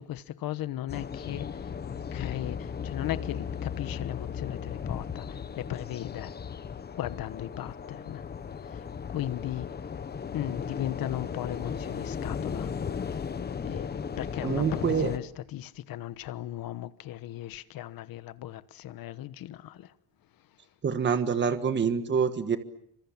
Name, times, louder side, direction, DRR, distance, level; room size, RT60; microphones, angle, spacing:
voice 1, 0.0-1.7 2.1-6.3 6.9-8.2 8.6-9.7 10.3-12.7 13.6-13.9 14.2-19.9, left 13 dB, 60° left, 1.2 m, -37 dB
sound 1, 0.9-15.2, left 6 dB, 25° left, 1.1 m, -36 dB
voice 2, 14.4-15.1 20.8-22.6, right 6 dB, 30° right, 1.5 m, -26 dB
29.0 x 25.5 x 7.3 m
cardioid pair, 170°, 38 cm